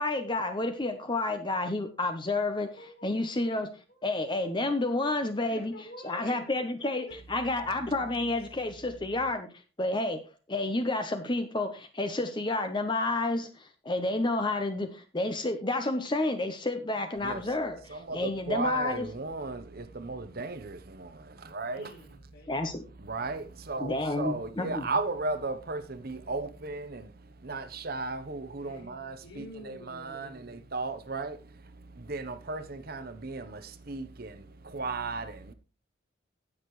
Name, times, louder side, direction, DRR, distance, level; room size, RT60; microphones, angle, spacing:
voice 1, 0.0-2.7 3.0-3.7 4.0-5.7 6.0-9.5 9.8-10.2 10.5-19.1 22.5-22.8 23.8-24.9, left 2 dB, 25° left, 0.9 m, -30 dB
voice 2, 2.4-3.6 3.9-4.1 4.4-4.7 5.5-6.5 6.8-7.2 16.8-17.3 21.7-22.9 28.6-30.7, equal, 60° left, 5.2 m, -50 dB
voice 3, 17.9-21.9 23.0-35.5, right 3 dB, 50° right, 1.0 m, -36 dB
17.0 x 6.6 x 3.2 m
head